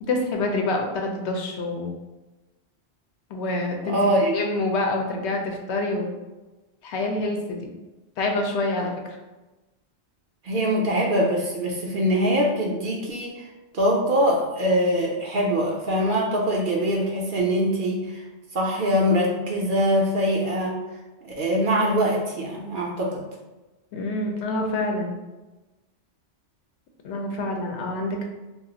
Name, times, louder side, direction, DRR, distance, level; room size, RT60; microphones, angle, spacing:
voice 1, 0.0-1.9 3.3-6.1 6.8-7.7 8.2-9.2 23.9-25.1 27.0-28.2, left 2 dB, 75° left, 2 dB, 0.8 m, -27 dB
voice 2, 3.9-4.4 10.4-13.5 13.7-18.2 18.5-20.8 21.2-23.2, equal, 60° right, -2 dB, 0.6 m, -23 dB
2.4 x 2.3 x 3.8 m, 1.1 s
omnidirectional pair, 1.2 m